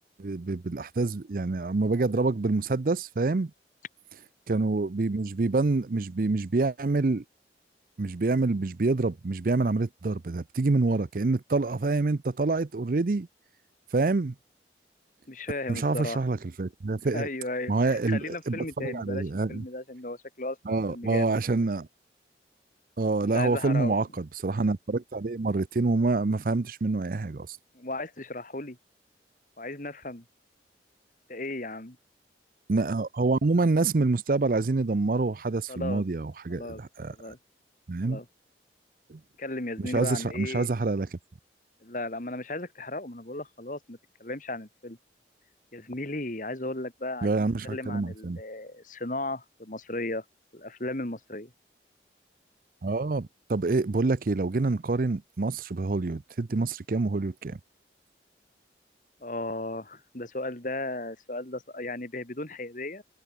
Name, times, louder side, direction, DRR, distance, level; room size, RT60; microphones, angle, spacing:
voice 1, 0.2-3.5 4.5-7.2 8.0-13.3 13.9-14.3 15.7-17.3 17.7-19.6 20.7-21.9 23.0-27.6 32.7-37.3 37.9-38.2 39.1-39.2 39.8-41.2 47.2-48.4 52.8-57.6, right 3 dB, 50° right, 0.5 m, -27 dB
voice 2, 15.3-16.2 17.1-21.4 23.3-24.0 27.7-28.8 29.6-30.2 31.3-32.0 35.7-36.0 36.5-36.8 37.1-37.4 38.0-38.3 39.4-40.7 41.8-45.0 45.7-50.2 50.5-51.5 59.2-63.0, left 2 dB, 45° left, 2.2 m, -35 dB
head